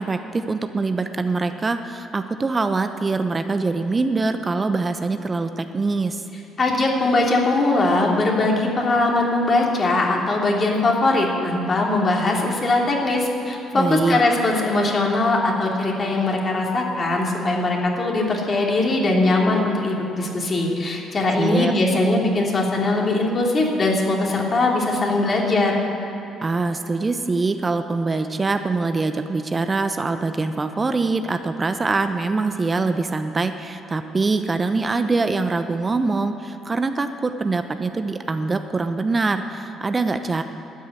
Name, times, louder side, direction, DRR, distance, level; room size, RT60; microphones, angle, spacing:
voice 1, 0.0-6.2 13.7-14.2 21.4-21.7 26.4-40.4, right 3 dB, 30° right, 8 dB, 0.8 m, -23 dB
voice 2, 6.6-25.8, left 2 dB, 40° left, -1 dB, 3.2 m, -21 dB
12.5 x 9.6 x 9.1 m, 2.9 s
hypercardioid pair, 45°, 0 cm